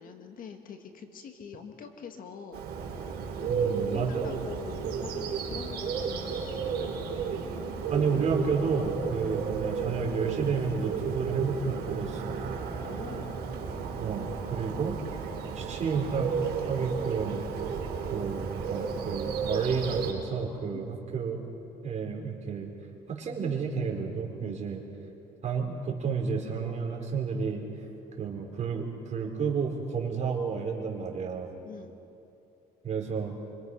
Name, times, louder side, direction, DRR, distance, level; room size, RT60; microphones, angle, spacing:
voice 1, 0.0-2.6 3.4-6.9 12.8-13.3 20.7-20.9 24.4-24.6 31.6-31.9, left 6 dB, 55° left, 5 dB, 2.1 m, -44 dB
Bird, 2.5-20.1, right 6 dB, 70° right, 4.6 m, -33 dB
voice 2, 3.5-4.3 7.9-12.4 14.0-15.0 15.5-16.3 16.7-17.4 18.1-21.4 21.8-22.7 23.1-24.8 25.4-27.6 28.2-31.5 32.8-33.3, right 5 dB, 45° right, 0 dB, 4.1 m, -31 dB
25.5 x 25.5 x 5.6 m, 2.8 s
cardioid pair, 110°, 17 cm